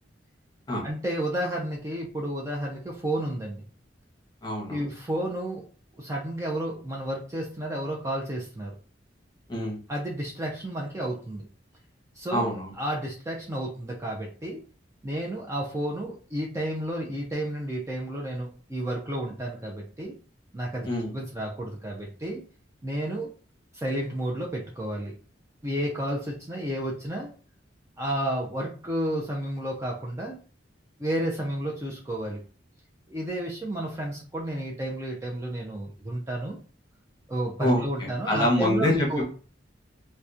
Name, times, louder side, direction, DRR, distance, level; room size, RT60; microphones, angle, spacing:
voice 1, 0.8-3.6 4.7-5.6 6.0-8.7 9.9-11.4 12.2-14.6 15.0-20.1 20.5-22.4 22.8-23.3 23.7-25.1 25.6-27.3 28.0-30.4 31.0-32.4 33.1-36.6 37.3-39.2, right 1 dB, 15° right, -2 dB, 0.4 m, -31 dB
voice 2, 4.4-4.9 9.5-9.8 12.3-12.7 20.8-21.1 37.6-39.2, equal, 25° left, -2 dB, 0.8 m, -26 dB
2.8 x 2.1 x 2.3 m, 0.38 s
head